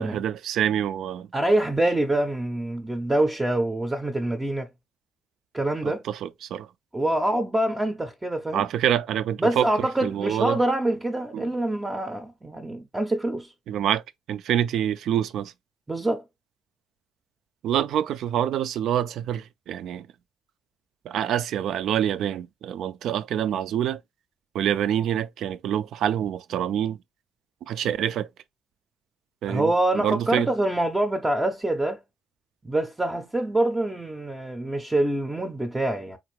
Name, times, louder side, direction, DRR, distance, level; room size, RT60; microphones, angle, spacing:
voice 1, 0.0-1.3 5.8-6.7 8.5-9.7 10.0-10.6 11.3-11.5 13.7-14.0 14.3-15.5 17.6-20.1 21.1-24.0 24.5-27.0 27.7-28.3 29.4-30.5, right 10 dB, 75° right, 0.3 m, -26 dB
voice 2, 1.3-4.7 5.5-6.0 6.9-8.6 9.4-13.5 15.9-16.2 29.5-32.0 32.6-36.2, right 1 dB, 15° right, 0.5 m, -25 dB
3.8 x 2.5 x 2.9 m
cardioid pair, 90°, 0 cm